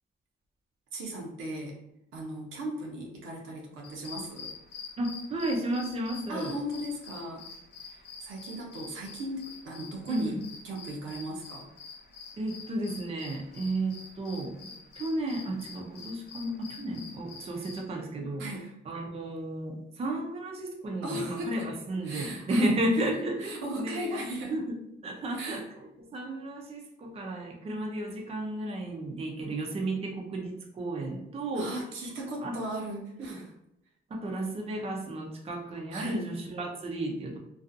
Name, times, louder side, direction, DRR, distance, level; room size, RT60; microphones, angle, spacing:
voice 1, 0.9-1.8 2.1-4.5 6.3-7.5 7.8-11.7 18.4-18.7 21.0-21.7 22.0-23.0 23.4-24.6 25.3-25.6 31.5-33.5 35.9-36.2, right 1 dB, 85° right, 0 dB, 0.7 m, -37 dB
sound 1, 3.8-17.8, left 4 dB, 55° left, 0.5 m, -47 dB
voice 2, 5.0-6.5 10.1-10.4 12.4-14.7 15.0-18.5 18.9-24.6 25.0-25.6 26.1-31.7 32.4-32.5 33.2-33.4 34.1-37.4, right 1 dB, 30° right, 1 dB, 0.5 m, -33 dB
2.5 x 2.3 x 2.5 m, 0.83 s
cardioid pair, 90°, 20 cm